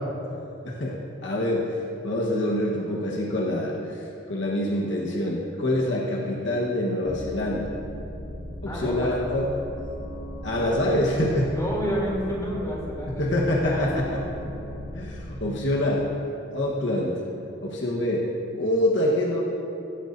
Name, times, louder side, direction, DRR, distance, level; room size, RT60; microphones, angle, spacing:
voice 1, 0.6-1.0 1.2-1.7 2.0-4.0 4.3-7.7 8.6-9.5 10.4-11.5 13.2-14.0 14.9-16.0 16.5-17.2 17.6-18.2 18.5-19.4, left 1 dB, 65° left, -3 dB, 1.2 m, -25 dB
sound 1, 7.0-15.5, equal, 40° left, 1.2 m, -38 dB
voice 2, 8.6-9.1 10.6-11.0 11.5-14.0, equal, 20° left, -5 dB, 3.1 m, -30 dB
16.5 x 13.5 x 2.7 m, 2.8 s
head